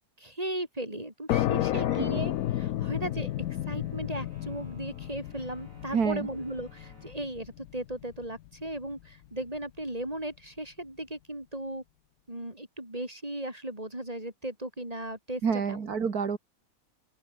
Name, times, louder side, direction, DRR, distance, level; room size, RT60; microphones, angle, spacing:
voice 1, 0.0-3.3 3.7-11.8 12.3-15.8, right 1 dB, 25° right, 6.6 m, -37 dB
sound 1, 1.3-8.7, left 13 dB, 75° left, 1.1 m, -32 dB
voice 2, 1.7-2.1 5.9-6.3 15.4-16.4, right 6 dB, 80° right, 2.5 m, -28 dB
sound 2, 2.2-7.2, right 2 dB, 60° right, 7.5 m, -57 dB
open air
omnidirectional pair, 1.6 m